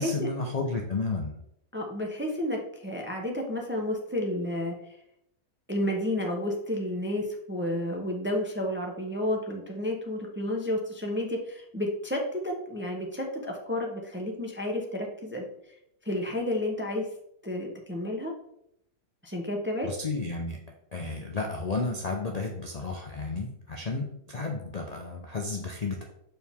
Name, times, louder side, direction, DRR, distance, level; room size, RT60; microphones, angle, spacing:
voice 1, 0.0-1.3 19.8-20.6 20.9-26.1, left 3 dB, 70° left, 1 dB, 0.3 m, -32 dB
voice 2, 1.7-4.8 5.7-15.5 16.0-17.1 17.4-18.3 19.2-19.9, left 1 dB, 15° right, 0 dB, 0.5 m, -31 dB
6.7 x 4.7 x 3.5 m, 0.76 s
omnidirectional pair, 1.7 m